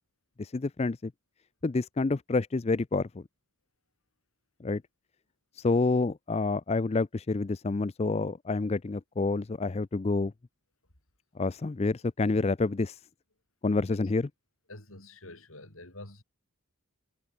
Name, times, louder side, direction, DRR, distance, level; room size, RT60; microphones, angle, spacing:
voice 1, 0.4-1.1 1.6-3.2 4.6-4.8 5.6-10.3 11.4-13.0 13.6-14.3, left 3 dB, 30° left, 0.4 m, -28 dB
voice 2, 14.7-16.2, left 2 dB, 65° left, 6.9 m, -47 dB
head